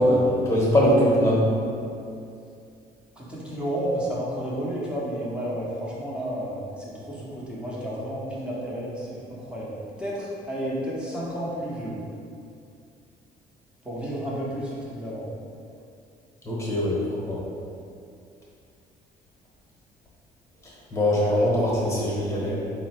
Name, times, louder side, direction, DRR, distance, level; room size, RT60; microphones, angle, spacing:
voice 1, 0.0-1.5 16.4-17.4 20.6-22.5, equal, 15° left, -5 dB, 1.2 m, -22 dB
voice 2, 3.2-12.0 13.8-15.3 22.3-22.7, equal, 5° right, -7 dB, 0.9 m, -31 dB
4.0 x 2.1 x 4.3 m, 2.5 s
cardioid pair, 110°, 17 cm